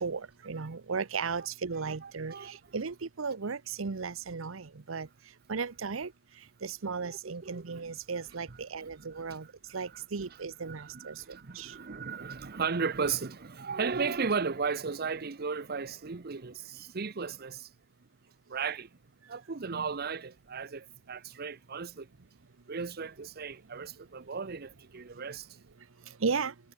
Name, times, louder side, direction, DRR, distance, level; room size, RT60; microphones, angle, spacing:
voice 1, 0.0-2.3 2.7-5.1 5.5-6.1 6.6-9.4 9.7-11.1 11.6-11.7 19.7-19.8 26.2-26.5, right 5 dB, 90° right, 0.8 m, -35 dB
voice 2, 1.7-2.7 7.0-7.8 8.5-17.7 18.5-18.9 19.3-22.1 22.7-25.6, right 5 dB, 50° right, 0.8 m, -36 dB
head